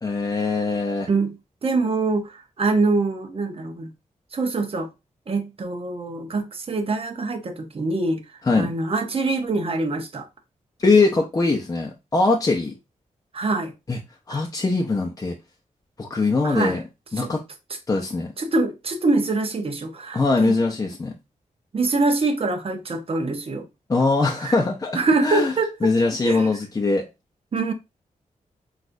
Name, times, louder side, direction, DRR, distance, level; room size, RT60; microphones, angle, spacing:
voice 1, 0.0-1.1 8.4-8.7 10.8-12.7 13.9-14.0 14.3-15.3 16.0-16.8 17.1-17.4 17.9-18.3 20.1-21.1 23.9-25.5 25.8-27.1, left 3 dB, 25° left, 0.7 m, -22 dB
voice 2, 1.1-3.9 4.3-4.9 5.3-8.2 8.6-10.3 13.3-13.7 14.3-14.4 16.4-16.8 17.2-17.3 18.4-20.6 21.7-23.7 24.4-24.6 24.9-25.9 26.2-26.5 27.5-27.7, right 3 dB, 45° right, 0.9 m, -24 dB
6.1 x 2.5 x 2.6 m
wide cardioid pair, 120°, 13 cm